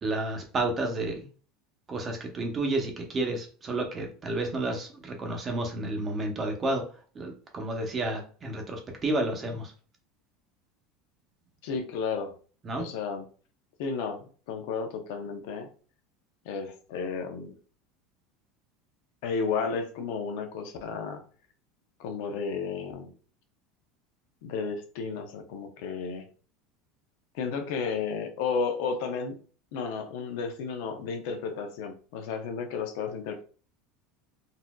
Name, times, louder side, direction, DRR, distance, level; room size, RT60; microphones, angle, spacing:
voice 1, 0.0-1.3 1.9-6.8 7.1-9.7 12.6-12.9, right 2 dB, 25° right, 2 dB, 0.8 m, -31 dB
voice 2, 11.6-12.3 12.8-13.2 13.8-15.7 16.4-17.6 19.2-21.2 22.0-23.1 24.4-26.3 27.3-29.4 29.7-33.4, left 5 dB, 70° left, 6 dB, 0.7 m, -33 dB
4.1 x 2.5 x 2.3 m, 0.41 s
supercardioid pair, 145°, 0 cm